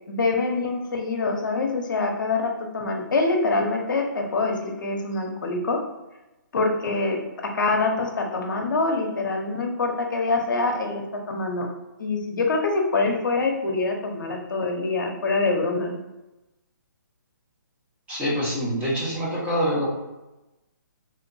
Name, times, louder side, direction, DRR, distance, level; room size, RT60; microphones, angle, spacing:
voice 1, 0.1-5.8 6.5-7.2 7.5-11.7 12.0-15.9, left 3 dB, 75° left, 2 dB, 0.7 m, -25 dB
voice 2, 18.1-19.9, equal, 15° right, -7 dB, 1.0 m, -25 dB
3.3 x 2.8 x 2.6 m, 1.0 s
hypercardioid pair, 155°, 11 cm